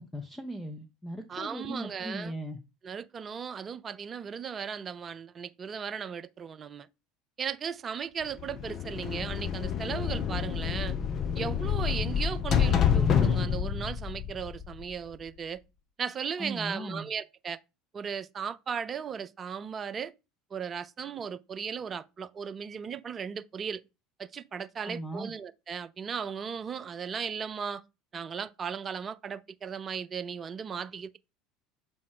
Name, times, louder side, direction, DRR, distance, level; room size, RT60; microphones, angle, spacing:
voice 1, 0.0-2.6 16.4-17.1 24.8-25.3, right 1 dB, 10° left, 0.8 m, -38 dB
voice 2, 1.3-2.3 2.8-6.9 7.4-11.0 11.4-15.6 16.0-17.6 17.9-20.1 20.5-23.8 24.2-27.8 28.1-31.2, right 7 dB, 30° right, 0.5 m, -36 dB
sound 1, 8.4-15.2, left 7 dB, 40° left, 0.8 m, -28 dB
6.8 x 3.1 x 4.7 m
figure-of-eight pair, 70°, 0 cm